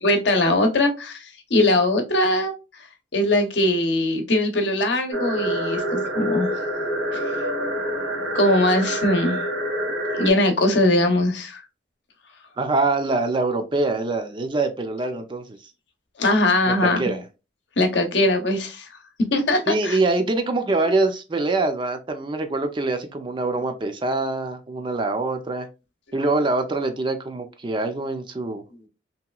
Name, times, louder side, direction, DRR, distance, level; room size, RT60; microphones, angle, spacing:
voice 1, 0.0-2.9 3.1-6.5 7.1-7.3 8.3-9.4 10.1-11.6 16.2-17.0 17.8-18.9 19.3-20.0, left 1 dB, 65° left, 0.7 m, -21 dB
sound 1, 5.1-10.3, right 1 dB, 75° right, 1.1 m, -26 dB
voice 2, 12.6-15.4 16.8-17.2 19.7-25.7 26.1-28.6, right 2 dB, 25° right, 0.4 m, -24 dB
3.1 x 2.9 x 2.2 m
head